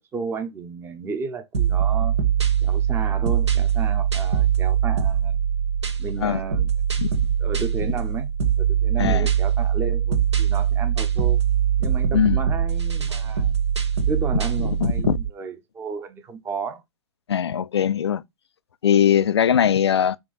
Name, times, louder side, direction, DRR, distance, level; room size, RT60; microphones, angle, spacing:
voice 1, 0.1-2.2 2.6-5.4 6.0-6.7 7.4-8.3 8.6-11.4 11.8-13.6 14.1-16.8, right 5 dB, 15° right, 0.9 m, -33 dB
sound 1, 1.5-15.3, right 8 dB, 70° right, 1.1 m, -22 dB
voice 2, 14.8-15.2 17.3-18.2 18.8-20.2, left 9 dB, 65° left, 0.5 m, -20 dB
6.0 x 3.1 x 2.5 m
figure-of-eight pair, 105°, 15 cm